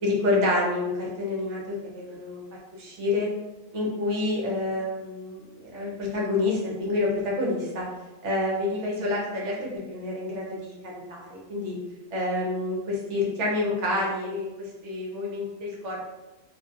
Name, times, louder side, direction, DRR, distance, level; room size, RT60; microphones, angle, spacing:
voice 1, 0.0-2.4 2.7-3.3 3.7-7.8 8.2-11.8 12.1-16.1, left 2 dB, 65° right, -3 dB, 1.0 m, -28 dB
2.7 x 2.5 x 2.5 m, 1.1 s
omnidirectional pair, 1.4 m